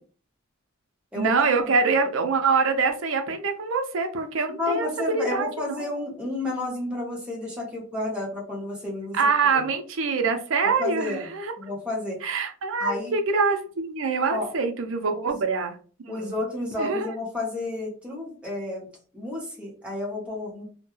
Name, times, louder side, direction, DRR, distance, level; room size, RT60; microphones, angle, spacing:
voice 1, 1.2-5.8 9.1-11.5 12.2-15.8 16.0-16.3 16.8-17.1, right 4 dB, 65° right, 6 dB, 0.5 m, -25 dB
voice 2, 4.6-9.2 9.5-9.7 10.8-11.3 11.6-12.2 12.8-13.1 14.3-14.5 15.2-15.4 16.1-20.6, left 2 dB, 5° right, -4 dB, 0.8 m, -31 dB
2.2 x 2.1 x 3.0 m, 0.39 s
head